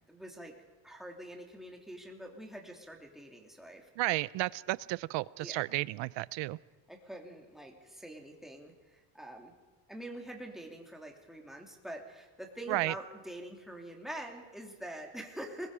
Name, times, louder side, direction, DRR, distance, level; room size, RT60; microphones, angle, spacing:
voice 1, 0.1-0.6 0.8-3.9 5.4-5.7 6.9-9.5 9.9-15.7, right 1 dB, ahead, 1 dB, 3.0 m, -45 dB
voice 2, 4.0-6.6 12.7-12.9, right 19 dB, 70° right, 20 dB, 0.7 m, -32 dB
27.5 x 21.5 x 5.0 m, 1.3 s
cardioid pair, 135°, 46 cm